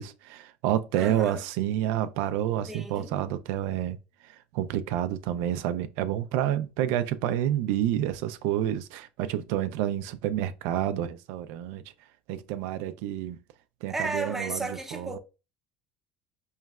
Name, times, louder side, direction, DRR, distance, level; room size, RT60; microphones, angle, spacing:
voice 1, 0.0-4.0 4.2-11.8 12.3-13.4 13.8-15.2, right 11 dB, 75° right, 0.4 m, -29 dB
voice 2, 0.9-1.4 2.7-3.1 13.9-15.2, right 3 dB, 5° right, 0.6 m, -33 dB
4.6 x 3.1 x 2.3 m
supercardioid pair, 120°, 4 cm